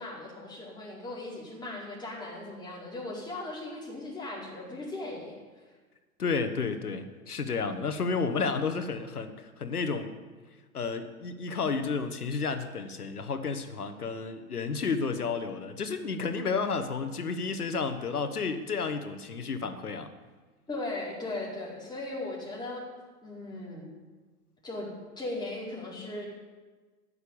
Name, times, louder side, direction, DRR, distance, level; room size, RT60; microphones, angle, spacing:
voice 1, 0.0-5.4 20.7-22.8 23.2-23.9 24.6-24.9 25.2-26.2, left 2 dB, 10° left, -4 dB, 4.4 m, -38 dB
voice 2, 6.2-10.1 10.7-20.1, left 4 dB, 90° left, 9 dB, 1.4 m, -31 dB
13.5 x 6.9 x 8.8 m, 1.3 s
hypercardioid pair, 110°, 44 cm